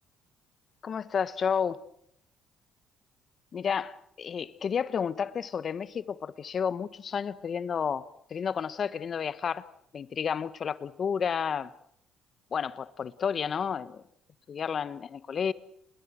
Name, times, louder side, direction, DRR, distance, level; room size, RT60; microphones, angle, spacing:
voice 1, 0.8-1.8 3.5-9.7 9.9-11.7 12.5-14.0 14.5-15.5, left 7 dB, 50° left, 1.3 m, -31 dB
29.5 x 21.5 x 6.4 m
hypercardioid pair, 60°, 0 cm